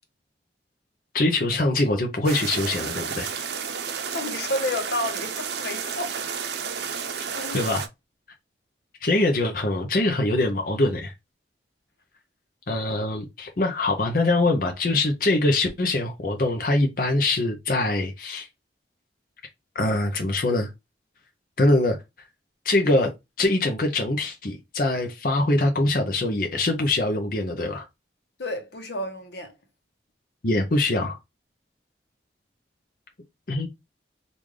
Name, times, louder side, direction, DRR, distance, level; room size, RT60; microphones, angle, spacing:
voice 1, 1.1-3.3 7.5-7.8 9.0-11.1 12.7-18.5 19.7-20.7 21.6-22.0 22.6-23.1 23.4-27.9 30.4-31.2 33.5-33.7, left 2 dB, 50° left, 0.6 m, -23 dB
sound 1, 2.2-7.9, right 6 dB, 70° right, 0.6 m, -31 dB
voice 2, 4.1-6.2 6.8-7.0 7.3-7.7 28.4-29.5, left 1 dB, 70° left, 1.0 m, -31 dB
3.2 x 2.6 x 3.5 m
head